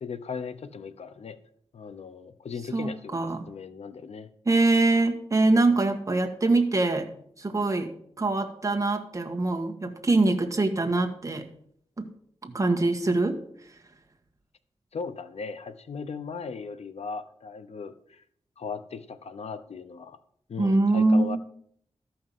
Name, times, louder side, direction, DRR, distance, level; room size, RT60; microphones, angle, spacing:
voice 1, 0.0-1.4 1.7-4.3 14.9-18.2 18.6-20.2 20.5-21.4, left 5 dB, 85° left, 11 dB, 0.9 m, -38 dB
voice 2, 2.7-3.5 4.4-7.1 7.4-11.5 12.0-12.1 12.4-13.4 20.6-21.4, right 2 dB, 30° right, 3 dB, 1.7 m, -24 dB
13.5 x 5.8 x 7.3 m, 0.66 s
wide cardioid pair, 100°, 11 cm